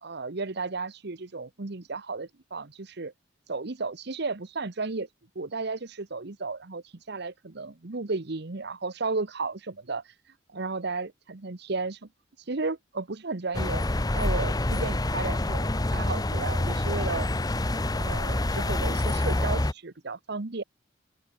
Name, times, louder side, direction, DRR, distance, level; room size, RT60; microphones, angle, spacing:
voice 1, 0.0-3.1 3.5-5.1 5.3-10.0 10.5-12.1 12.5-13.8 14.1-17.3 18.0-20.6, right 3 dB, 60° right, 1.1 m, -33 dB
sound 1, 13.5-19.7, left 1 dB, 20° left, 0.9 m, -27 dB
open air
head